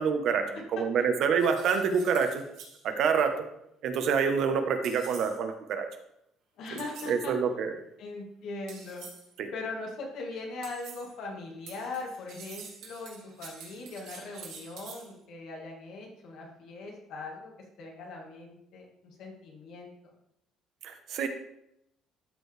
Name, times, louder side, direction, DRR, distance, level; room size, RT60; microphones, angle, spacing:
voice 1, 0.0-2.4 2.8-3.3 3.8-5.9 7.1-7.7 9.4-9.5 20.8-21.3, right 6 dB, 60° right, 7 dB, 1.0 m, -27 dB
sound 1, 1.4-2.8 4.8-5.4 6.8-7.2 8.7-9.3 10.6-11.1 11.7-15.1, right 6 dB, 80° right, 2.4 m, -47 dB
voice 2, 6.6-7.3 8.0-9.1 9.5-20.1, left 3 dB, 65° left, 0 dB, 1.6 m, -40 dB
12.5 x 4.6 x 3.3 m, 0.79 s
cardioid pair, 150°, 0 cm